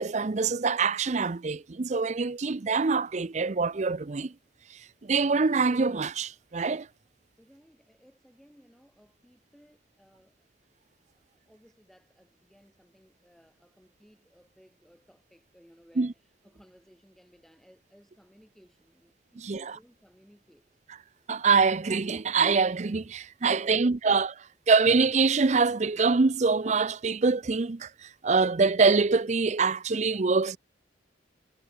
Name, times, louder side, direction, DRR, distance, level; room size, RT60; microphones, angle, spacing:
voice 1, 0.0-4.3 5.0-6.9 16.0-16.1 19.4-19.8 21.3-24.3 24.7-30.6, right 4 dB, 40° right, 0.5 m, -25 dB
voice 2, 7.4-10.5 11.1-20.7, equal, ahead, 6.9 m, -60 dB
head